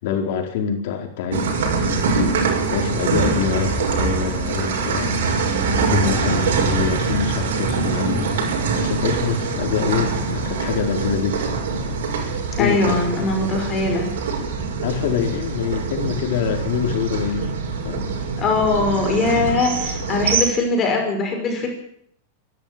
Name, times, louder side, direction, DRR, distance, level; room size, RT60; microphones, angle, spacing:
voice 1, 0.0-1.5 1.8-11.6 11.9-12.1 12.5-13.0 13.4-13.5 14.8-17.5 17.8-18.1, left 7 dB, 50° left, 3 dB, 4.7 m, -25 dB
sound 1, 1.3-20.4, right 4 dB, 85° right, 6.7 m, -23 dB
voice 2, 12.6-14.1 18.4-21.7, left 3 dB, 20° left, 3 dB, 5.5 m, -21 dB
24.5 x 13.0 x 8.9 m, 0.67 s
supercardioid pair, 170°, 0 cm